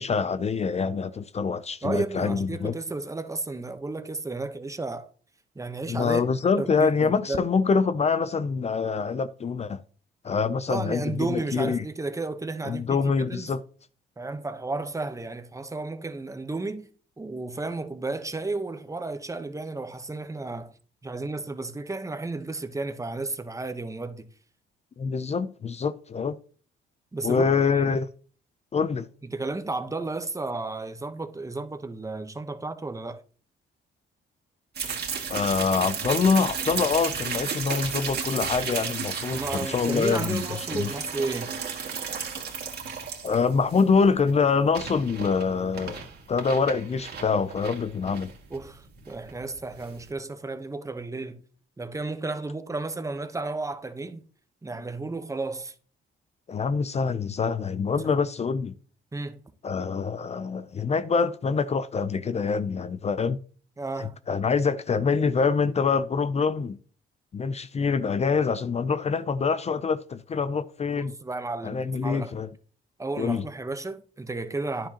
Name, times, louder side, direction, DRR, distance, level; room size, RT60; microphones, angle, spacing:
voice 1, 0.0-2.8 5.9-9.8 10.2-11.8 12.6-13.6 25.0-26.4 27.2-28.1 28.7-29.1 35.3-40.4 40.7-40.9 43.2-46.0 46.3-48.3 56.5-58.8 59.6-63.4 64.0-66.8 67.3-71.1 71.6-72.5 73.2-73.5, left 5 dB, 35° left, 0.5 m, -25 dB
voice 2, 1.8-5.1 5.5-6.2 6.6-7.4 10.7-13.5 14.2-16.9 17.2-20.7 21.0-24.3 27.1-27.5 27.8-27.9 29.3-33.2 39.3-41.6 48.5-51.4 51.8-54.2 54.6-55.7 58.0-58.1 59.1-59.4 63.8-64.2 70.9-72.3 73.0-74.9, right 3 dB, 15° right, 0.9 m, -33 dB
sound 1, 34.7-50.1, right 6 dB, 55° right, 2.2 m, -34 dB
10.0 x 7.3 x 2.9 m
cardioid pair, 90°, 20 cm